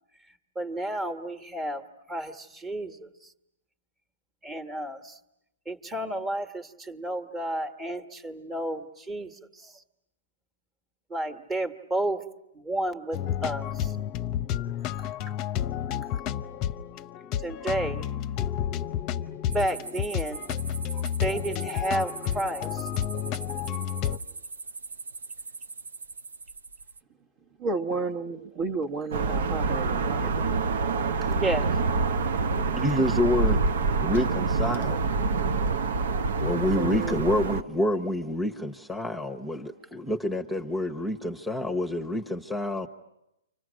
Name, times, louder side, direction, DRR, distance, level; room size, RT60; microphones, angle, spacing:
voice 1, 0.5-3.1 4.4-5.2 5.6-9.7 11.1-12.2 12.5-14.0 15.0-15.1 17.4-18.0 19.5-20.4 21.2-22.9 31.2-31.7, right 1 dB, 15° right, 7 dB, 1.6 m, -31 dB
sound 1, 13.1-24.2, left 10 dB, 30° left, 0.8 m, -31 dB
sound 2, 19.5-27.0, right 4 dB, 85° right, 1.0 m, -41 dB
voice 2, 27.6-30.5 36.4-36.5 36.8-37.2, right 3 dB, 40° right, 3 dB, 1.5 m, -32 dB
sound 3, 29.1-37.6, right 4 dB, 65° right, 1.0 m, -26 dB
voice 3, 32.5-33.6 34.0-35.0 36.4-42.9, left 1 dB, ahead, 4 dB, 1.3 m, -28 dB
29.5 x 26.0 x 6.4 m, 0.88 s
hypercardioid pair, 135°, 0 cm